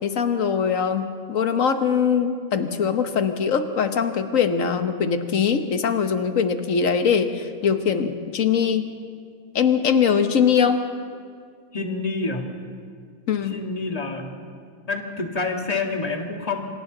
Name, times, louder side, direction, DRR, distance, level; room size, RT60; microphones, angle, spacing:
voice 1, 0.0-8.9 9.5-10.8 13.3-13.6, left 6 dB, 60° left, 8 dB, 1.4 m, -22 dB
voice 2, 11.7-12.5 13.4-14.3 14.9-16.7, left 3 dB, 25° left, 2 dB, 1.9 m, -27 dB
26.5 x 26.0 x 3.9 m, 2.1 s
omnidirectional pair, 1.6 m